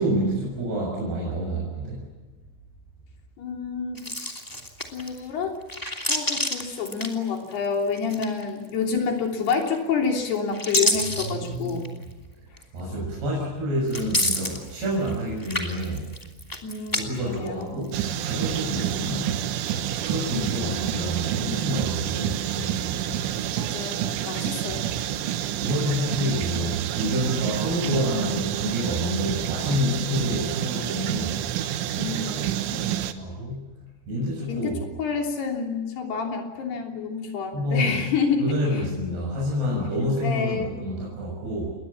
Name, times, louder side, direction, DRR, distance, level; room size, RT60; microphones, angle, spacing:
voice 1, 0.0-2.0 11.2-11.9 12.7-16.1 16.9-19.3 20.0-23.3 25.6-31.4 32.8-33.7 34.1-34.8 37.5-38.0 38.4-41.7, equal, 55° right, -4 dB, 8.7 m, -28 dB
voice 2, 3.4-4.0 4.9-5.5 6.1-11.9 16.6-17.9 23.6-25.2 32.0-32.9 34.5-34.7 35.0-38.5 40.2-40.7, left 5 dB, 55° left, 3 dB, 5.0 m, -28 dB
sound 1, 3.9-5.2 5.6-7.6 8.0-8.6 9.4-9.9 10.3-12.0 12.6-12.7 13.9-15.1 15.4-17.0 17.3-18.1, left 1 dB, 10° left, 0.8 m, -28 dB
sound 2, 17.9-33.1, right 11 dB, 80° right, 3.6 m, -28 dB
28.5 x 22.0 x 7.4 m, 1.2 s
omnidirectional pair, 5.8 m